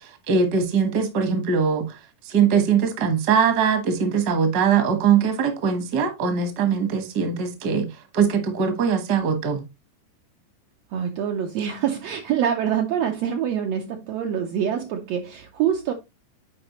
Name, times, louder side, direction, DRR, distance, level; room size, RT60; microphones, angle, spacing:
voice 1, 0.0-9.6, right 6 dB, 60° right, 1.0 m, -22 dB
voice 2, 10.9-15.9, right 9 dB, 90° right, 1.4 m, -25 dB
8.6 x 4.8 x 3.0 m
omnidirectional pair, 3.8 m